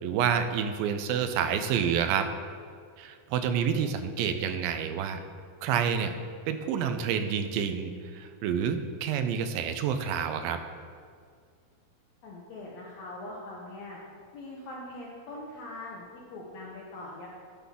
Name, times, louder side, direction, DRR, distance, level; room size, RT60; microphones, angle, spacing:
voice 1, 0.0-2.3 3.0-5.2 5.6-6.1 6.5-10.6, right 7 dB, 85° right, 8 dB, 2.3 m, -28 dB
voice 2, 12.2-14.0 14.3-17.3, left 2 dB, 75° left, -3 dB, 1.6 m, -42 dB
9.9 x 5.7 x 3.6 m, 2.1 s
omnidirectional pair, 4.1 m